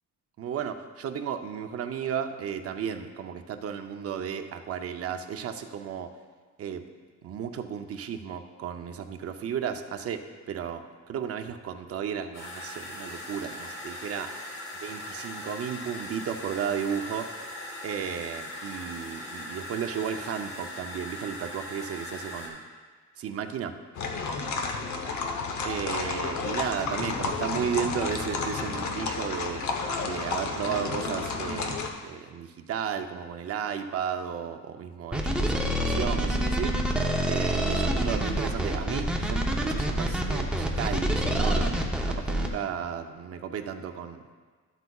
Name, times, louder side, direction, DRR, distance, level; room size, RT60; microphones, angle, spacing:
voice 1, 0.4-6.1 6.6-6.8 7.2-14.3 14.8-17.3 17.8-22.6 23.2-23.7 25.6-29.6 30.0-36.8 37.2-41.7 42.1-44.3, right 8 dB, 55° right, 7 dB, 0.6 m, -34 dB
sound 1, 12.3-22.5, left 1 dB, 50° left, 2.3 m, -40 dB
sound 2, 23.9-31.9, left 4 dB, 75° left, 0.9 m, -31 dB
sound 3, 35.1-42.5, right 1 dB, 5° right, 0.6 m, -26 dB
12.5 x 8.0 x 2.3 m, 1.5 s
wide cardioid pair, 170°, 29 cm